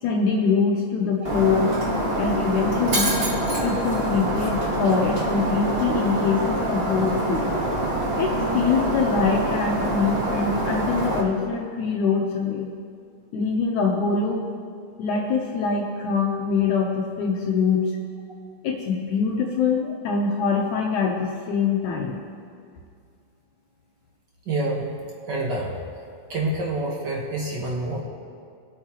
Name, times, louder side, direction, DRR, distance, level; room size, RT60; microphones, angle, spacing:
voice 1, 0.0-1.7 2.2-3.2 3.6-7.5 8.2-12.7 13.3-14.5 15.0-17.9 18.6-22.2, left 5 dB, 75° left, 0 dB, 2.2 m, -24 dB
Shatter, 1.2-11.2, right 1 dB, 70° right, 0.5 m, -25 dB
voice 2, 24.4-24.9 25.3-25.8 26.3-28.0, right 2 dB, 50° right, -2 dB, 1.3 m, -27 dB
22.0 x 8.6 x 3.0 m, 2.2 s
omnidirectional pair, 3.8 m